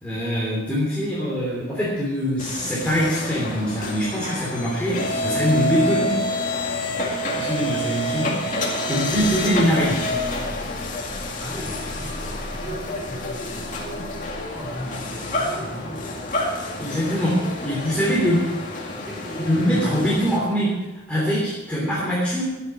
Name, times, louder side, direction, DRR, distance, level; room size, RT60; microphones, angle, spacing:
voice 1, 0.0-6.3 7.3-10.1 16.8-18.5 19.4-22.4, equal, 5° left, -7 dB, 3.2 m, -23 dB
sound 1, 2.4-20.4, left 1 dB, 40° left, 2.3 m, -28 dB
voice 2, 11.4-13.7 14.4-16.2 16.9-18.4 18.9-20.1, equal, 15° right, -5 dB, 5.3 m, -37 dB
14.5 x 9.3 x 6.2 m, 1.1 s
head